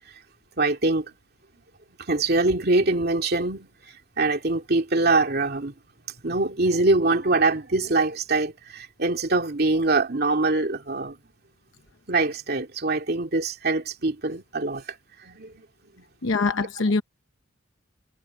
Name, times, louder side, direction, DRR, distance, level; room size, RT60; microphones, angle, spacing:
voice 1, 0.6-1.1 2.1-3.7 4.2-5.7 6.2-11.2 12.1-14.8 15.2-15.5 16.0-16.1, right 3 dB, 55° right, 2.5 m, -23 dB
voice 2, 16.2-17.0, left 3 dB, 80° left, 0.9 m, -23 dB
head